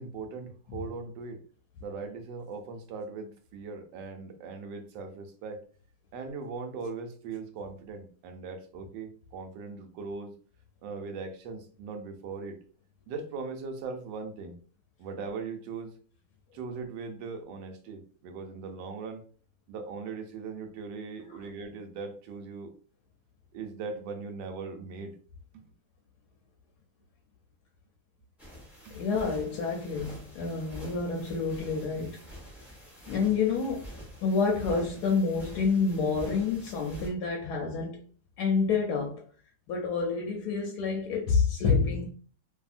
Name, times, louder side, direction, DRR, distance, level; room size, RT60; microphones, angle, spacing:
voice 1, 0.0-1.4 1.8-5.6 6.1-10.3 10.8-12.6 13.1-14.6 15.0-15.9 16.5-19.2 19.7-22.7 23.5-25.1 25.5-25.7 28.8-29.0, right 4 dB, 85° right, 1.3 m, -39 dB
sound 1, 28.4-37.1, equal, ahead, 0.7 m, -46 dB
voice 2, 28.9-32.2 33.1-33.9 34.2-38.0 38.4-39.2 39.7-42.1, left 5 dB, 75° left, 1.0 m, -28 dB
2.7 x 2.6 x 2.4 m
omnidirectional pair, 1.9 m